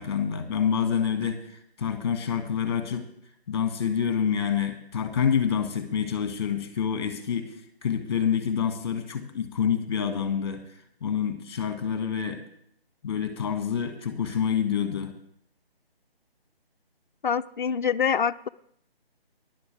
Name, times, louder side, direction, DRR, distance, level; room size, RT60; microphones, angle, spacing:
voice 1, 0.0-3.1 3.5-7.5 7.8-10.6 11.0-12.4 13.0-15.2, left 7 dB, 25° left, 8 dB, 1.6 m, -27 dB
voice 2, 17.2-18.5, left 7 dB, 55° left, 8 dB, 0.6 m, -25 dB
15.5 x 11.0 x 5.1 m, 0.66 s
figure-of-eight pair, 160°, 31 cm